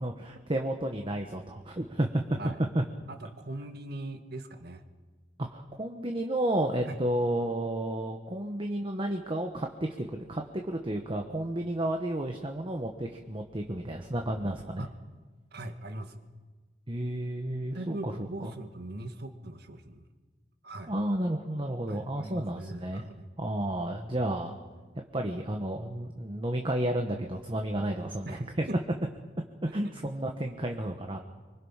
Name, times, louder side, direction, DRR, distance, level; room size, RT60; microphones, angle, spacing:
voice 1, 0.0-2.2 2.7-2.8 5.4-14.9 16.9-18.1 18.4-18.5 20.9-23.1 23.4-24.6 25.1-28.6 29.7-31.2, right 1 dB, 30° right, 3 dB, 1.3 m, -32 dB
voice 2, 3.1-4.8 6.9-7.0 14.8-14.9 15.5-16.2 17.7-20.1 20.6-20.9 21.9-23.3 28.3-28.8 29.7-29.9, right 1 dB, 60° right, 7 dB, 1.8 m, -41 dB
25.0 x 24.0 x 5.8 m, 1.4 s
head